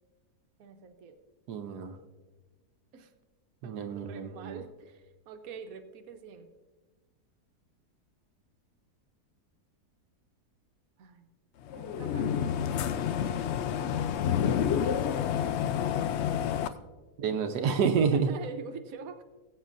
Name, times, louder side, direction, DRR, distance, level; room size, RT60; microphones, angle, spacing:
voice 1, 0.6-1.2 2.9-3.1 3.6-6.5 11.0-11.3 11.7-13.3 14.6-15.0 16.6-16.8 18.1-19.2, right 5 dB, 65° right, 6 dB, 1.2 m, -45 dB
voice 2, 1.5-2.0 3.6-4.6 17.2-18.3, right 6 dB, 90° right, 5 dB, 1.3 m, -28 dB
sound 1, 11.7-16.7, left 8 dB, 80° left, 0.6 m, -29 dB
20.0 x 8.1 x 2.6 m, 1.2 s
omnidirectional pair, 1.7 m